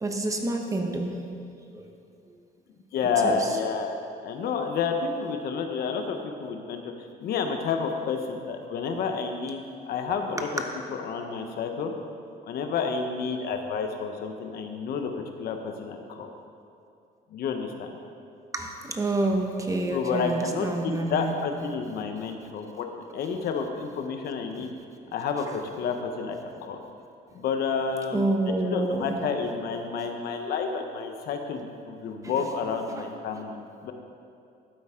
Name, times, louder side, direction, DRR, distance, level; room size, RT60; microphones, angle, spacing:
voice 1, 0.0-1.2 1.7-1.9 3.2-3.4 18.5-21.3 28.1-29.2 32.2-32.5 33.0-33.1, right 2 dB, 20° right, 2 dB, 1.1 m, -28 dB
voice 2, 2.9-4.0 4.2-6.9 7.2-10.6 10.9-11.9 12.4-16.3 17.3-17.9 19.9-22.9 23.1-24.7 25.1-26.4 26.6-26.8 27.3-28.3 28.6-33.6 33.8-33.9, left 5 dB, 65° left, 5 dB, 1.0 m, -30 dB
12.0 x 8.7 x 3.8 m, 2.6 s
cardioid pair, 110°, 17 cm